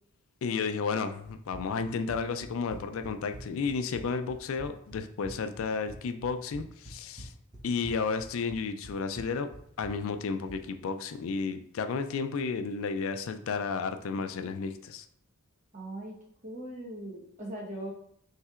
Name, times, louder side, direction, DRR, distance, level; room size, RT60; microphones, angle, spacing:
voice 1, 0.4-7.3 7.6-9.5 9.8-15.1, left 5 dB, 65° left, 8 dB, 0.3 m, -32 dB
Run, 1.2-10.7, right 1 dB, 20° right, 0.7 m, -47 dB
voice 2, 15.7-16.2 16.4-17.9, right 1 dB, 35° right, -3 dB, 1.1 m, -39 dB
5.6 x 3.2 x 2.4 m, 0.65 s
head